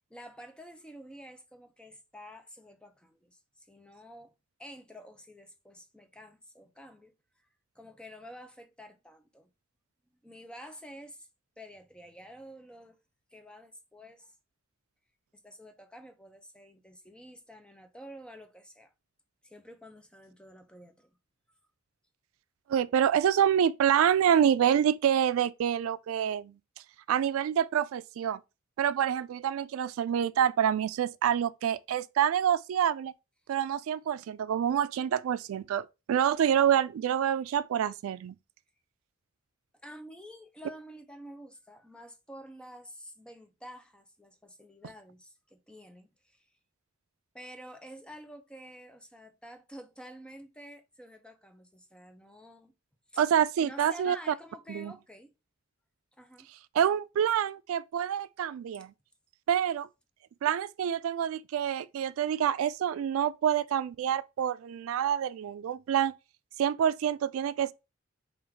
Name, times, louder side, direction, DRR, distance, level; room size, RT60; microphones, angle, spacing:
voice 1, 0.1-4.3 4.6-7.1 7.7-9.5 10.2-11.3 11.6-13.0 13.3-14.3 15.3-18.9 19.4-21.1 39.8-46.5 47.3-52.7 53.1-53.2 53.6-55.3 56.2-56.5, equal, 5° left, 0.6 m, -49 dB
voice 2, 22.7-26.5 27.1-28.4 28.8-33.1 33.5-38.3 53.2-54.3 54.7-54.9 56.7-58.9 59.5-59.9 60.4-66.1 66.6-67.7, right 9 dB, 80° right, 0.3 m, -27 dB
3.7 x 2.5 x 4.4 m
head